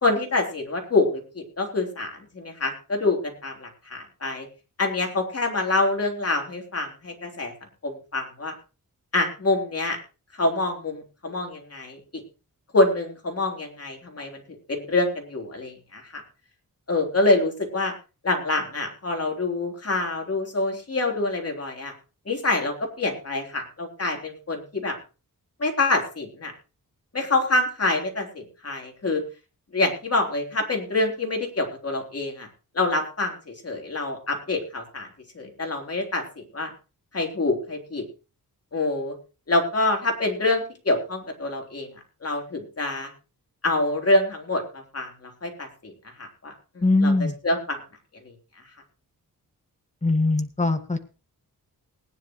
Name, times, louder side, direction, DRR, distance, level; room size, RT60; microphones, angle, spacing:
voice 1, 0.0-4.5 4.8-7.5 7.8-8.5 9.1-10.0 10.4-12.2 12.7-14.4 14.7-16.2 16.9-17.9 18.2-21.9 22.3-25.0 25.6-26.5 27.1-29.2 29.7-32.5 32.7-35.1 35.3-36.7 37.1-38.0 38.7-39.1 39.5-41.9 42.2-43.1 43.6-47.1 47.4-47.8, left 2 dB, 40° left, 2 dB, 3.7 m, -26 dB
voice 2, 46.8-47.4 50.0-51.0, left 2 dB, 20° left, 7 dB, 1.8 m, -21 dB
19.5 x 10.5 x 3.1 m, 0.32 s
wide cardioid pair, 90°, 36 cm